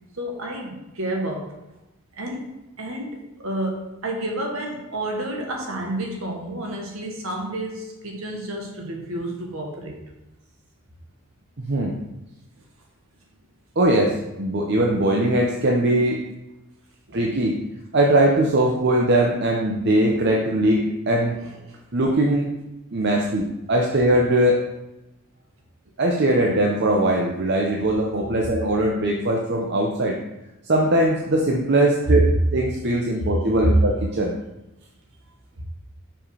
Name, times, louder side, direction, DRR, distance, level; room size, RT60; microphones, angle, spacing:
voice 1, 0.1-1.5 2.2-2.5 2.8-10.0 17.1-17.3 21.4-21.8 23.2-23.3 32.0-32.2 33.2-33.3 33.6-33.7, right 1 dB, 70° right, 0 dB, 1.6 m, -29 dB
voice 2, 13.8-16.2 17.1-17.6 17.9-21.4 21.9-22.5 22.9-24.6 26.0-30.2 30.7-32.2 32.5-34.3, right 1 dB, 50° right, 0 dB, 0.7 m, -20 dB
6.2 x 5.0 x 4.8 m, 0.96 s
head